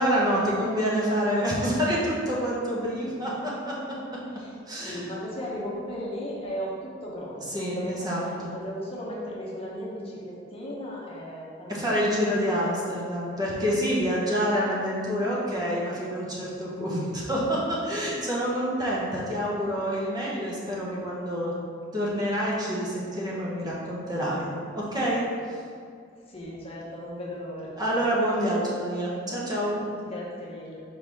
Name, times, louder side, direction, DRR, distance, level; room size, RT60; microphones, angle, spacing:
voice 1, 0.0-4.2 4.7-5.0 7.5-8.5 11.7-21.5 21.9-25.2 27.8-29.8, equal, 20° right, -6 dB, 1.0 m, -27 dB
voice 2, 4.3-12.8 26.3-27.7 30.0-30.8, equal, 30° left, -5 dB, 0.9 m, -36 dB
5.3 x 4.0 x 4.6 m, 2.3 s
head